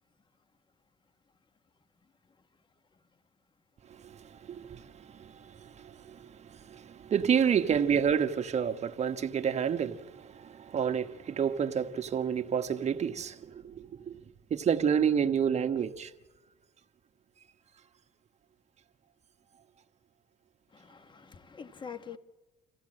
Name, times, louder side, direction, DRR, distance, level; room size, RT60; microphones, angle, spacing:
voice 1, 4.4-4.8 5.1-14.2 14.5-16.1, right 7 dB, 40° right, 1.3 m, -29 dB
voice 2, 20.7-22.2, left 7 dB, 30° left, 1.4 m, -45 dB
27.0 x 15.5 x 7.6 m
cardioid pair, 110°, 17 cm